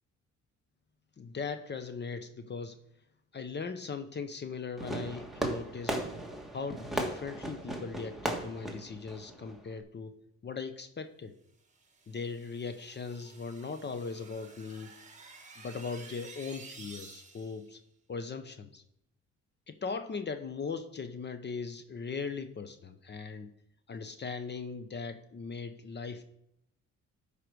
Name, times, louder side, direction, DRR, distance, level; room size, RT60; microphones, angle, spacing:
voice 1, 1.2-2.8 3.3-6.0 6.5-10.2 10.4-11.3 12.1-14.9 15.6-17.8 18.1-18.8 19.7-23.5 23.9-26.2, left 5 dB, 35° left, 9 dB, 0.8 m, -39 dB
Fireworks, 4.8-9.8, right 1 dB, ahead, 1.6 m, -37 dB
sound 1, 11.7-17.7, right 4 dB, 25° right, 1.6 m, -52 dB
12.0 x 5.0 x 4.7 m, 0.78 s
cardioid pair, 90°, 30 cm